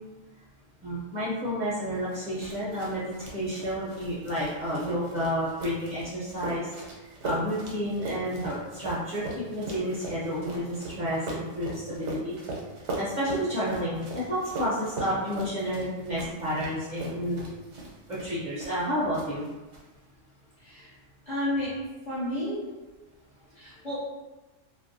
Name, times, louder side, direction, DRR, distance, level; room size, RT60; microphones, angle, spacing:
voice 1, 0.8-6.7 7.2-9.2 9.5-12.4 13.0-17.4 18.1-19.4, equal, 50° right, -9 dB, 0.6 m, -30 dB
sound 1, 2.1-18.9 19.1-19.8, right 2 dB, 75° right, 0.9 m, -39 dB
voice 2, 20.6-20.9 21.3-21.7 22.1-22.7 23.5-24.0, left 1 dB, 45° left, -9 dB, 0.6 m, -31 dB
2.5 x 2.1 x 2.5 m, 1.1 s
omnidirectional pair, 1.3 m